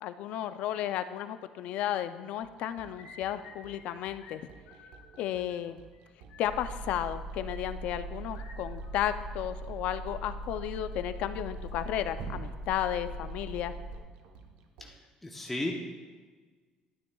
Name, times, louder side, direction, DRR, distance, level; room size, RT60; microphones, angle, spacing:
voice 1, 0.0-4.4 5.2-5.8 6.4-13.7, left 11 dB, 60° left, 11 dB, 0.4 m, -33 dB
sound 1, 2.4-15.0, right 5 dB, 90° right, 0.9 m, -54 dB
sound 2, 2.8-3.9 4.2-4.4 4.7-5.6 5.9-6.0 6.3-6.6 8.3-9.7 10.0-10.8, left 5 dB, 80° left, 1.7 m, -54 dB
sound 3, 6.4-14.0, right 1 dB, 60° right, 1.5 m, -40 dB
voice 2, 14.8-15.7, left 1 dB, 5° left, -1 dB, 0.7 m, -35 dB
12.0 x 9.7 x 2.3 m, 1.5 s
cardioid pair, 165°, 2 cm